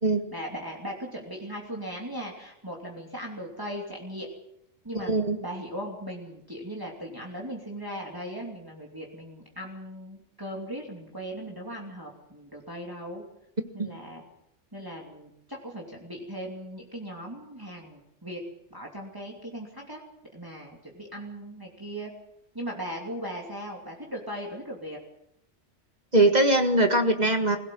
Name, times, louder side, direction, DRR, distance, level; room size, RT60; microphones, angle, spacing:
voice 1, 0.3-4.3 4.8-5.1 5.4-13.2 13.7-14.2 14.7-18.4 18.7-20.0 20.3-22.1 22.5-25.0, equal, 20° right, -1 dB, 2.9 m, -38 dB
voice 2, 5.0-5.4 13.8-13.9 26.1-27.6, right 2 dB, 35° right, 6 dB, 1.9 m, -21 dB
22.5 x 17.0 x 7.7 m, 0.77 s
omnidirectional pair, 1.2 m